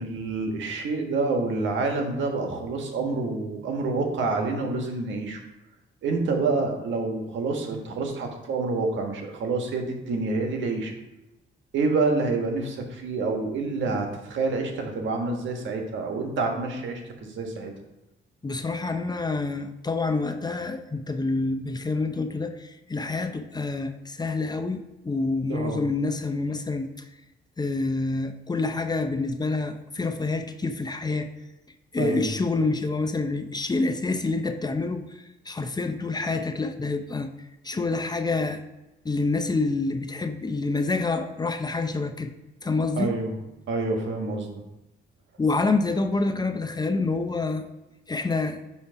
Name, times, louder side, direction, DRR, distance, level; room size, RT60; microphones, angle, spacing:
voice 1, 0.0-5.4 6.0-10.9 11.7-17.7 25.5-25.8 32.0-32.3 43.0-43.3 43.7-44.5, right 3 dB, 75° right, 3 dB, 1.4 m, -27 dB
voice 2, 18.4-27.0 27.6-31.3 31.9-37.3 37.6-38.6 39.0-42.3 42.6-43.2 45.4-47.6 48.1-48.6, left 3 dB, 20° left, 7 dB, 0.6 m, -27 dB
8.6 x 3.2 x 5.8 m, 0.99 s
cardioid pair, 90°, 20 cm